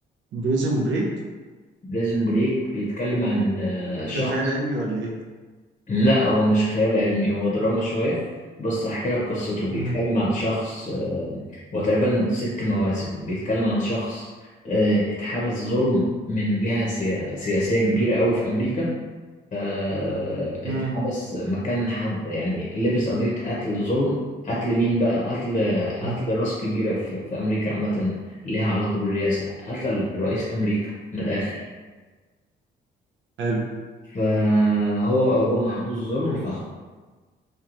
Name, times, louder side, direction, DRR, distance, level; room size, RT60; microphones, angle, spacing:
voice 1, 0.3-1.1 4.0-5.1 9.7-10.0 20.6-21.0 26.0-26.2 33.4-33.7, right 2 dB, 75° right, -1 dB, 0.6 m, -26 dB
voice 2, 1.9-4.4 5.9-8.2 8.6-14.3 14.6-18.9 19.5-24.2 24.4-28.2 28.4-31.6 34.1-36.6, equal, 35° left, -6 dB, 0.7 m, -24 dB
2.9 x 2.3 x 2.5 m, 1.4 s
cardioid pair, 90°, 20 cm